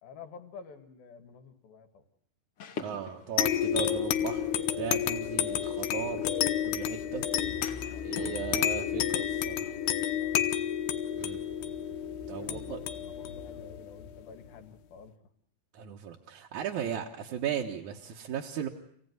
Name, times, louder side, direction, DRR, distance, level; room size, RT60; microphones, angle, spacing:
voice 1, 0.0-2.0 5.1-5.8 7.8-8.0 9.0-9.4 10.2-10.4 12.4-15.1 16.8-17.0, left 5 dB, 70° left, 8 dB, 3.4 m, -50 dB
sound 1, 2.6-8.6, left 6 dB, 50° left, 1.9 m, -47 dB
voice 2, 2.8-4.5 4.8-7.2 8.0-9.8 11.2-11.4 12.3-12.8 15.7-18.7, right 9 dB, 60° right, 0 dB, 2.4 m, -37 dB
sound 2, 3.4-14.5, left 10 dB, 85° left, 3.2 m, -31 dB
27.5 x 17.0 x 9.5 m, 0.69 s
omnidirectional pair, 4.6 m